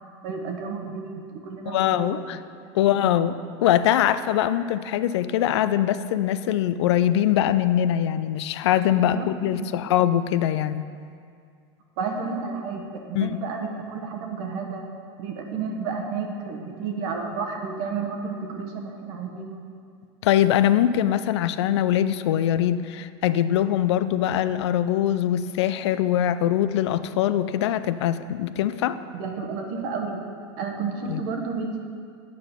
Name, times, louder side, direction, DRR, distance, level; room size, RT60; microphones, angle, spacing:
voice 1, 0.2-2.2 2.9-3.1 8.9-9.7 12.0-14.8 15.2-19.6 29.1-30.2 30.6-31.8, right 5 dB, 65° right, 3 dB, 1.2 m, -31 dB
voice 2, 1.7-2.4 2.7-3.3 3.6-10.8 13.1-13.4 20.2-29.0 31.1-31.2, left 11 dB, 80° left, 13 dB, 0.4 m, -22 dB
8.6 x 4.9 x 5.8 m, 2.2 s
supercardioid pair, 110°, 14 cm